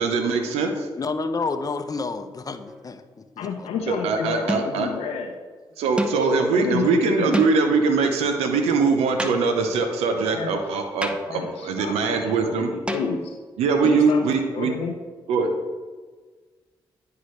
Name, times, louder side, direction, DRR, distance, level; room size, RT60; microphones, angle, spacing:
voice 1, 0.0-0.9 3.9-4.9 5.8-12.7 13.6-14.7 15.3-15.5, right 4 dB, 80° right, 5 dB, 0.7 m, -22 dB
voice 2, 1.0-3.7, left 4 dB, 35° left, 9 dB, 0.7 m, -30 dB
sound 1, 2.6-3.0 4.5-4.9 6.0-6.3 7.3-7.8 9.2-9.8 11.0-11.5 12.9-13.5, equal, 10° right, 0.8 m, -30 dB
voice 3, 3.4-5.3 6.2-7.4 10.3-10.6 11.3-13.3 13.8-14.2 14.5-14.9, left 5 dB, 80° left, 2 dB, 0.6 m, -30 dB
9.9 x 4.7 x 3.2 m, 1.4 s
supercardioid pair, 50°, 10 cm